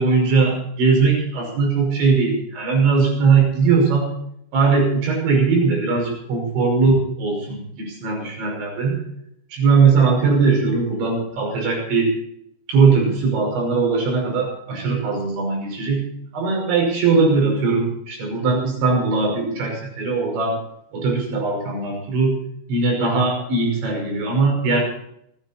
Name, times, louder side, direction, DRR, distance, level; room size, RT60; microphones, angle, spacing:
voice 1, 0.0-4.1 4.5-9.0 9.5-12.1 12.7-16.0 16.3-20.6 20.9-22.4 22.7-24.8, right 4 dB, 60° right, 0 dB, 8.0 m, -19 dB
28.0 x 10.5 x 4.4 m, 0.73 s
omnidirectional pair, 5.9 m